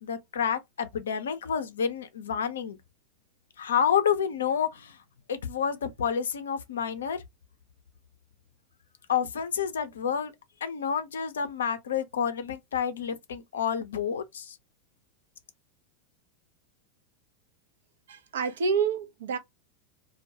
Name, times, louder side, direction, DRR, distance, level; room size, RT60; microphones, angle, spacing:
voice 1, 0.0-2.8 3.6-5.0 5.3-7.2 9.1-10.3 10.6-14.6, left 7 dB, 80° left, 0.4 m, -29 dB
voice 2, 18.1-19.4, right 6 dB, 75° right, 0.5 m, -28 dB
2.2 x 2.1 x 2.7 m
hypercardioid pair, 95°, 0 cm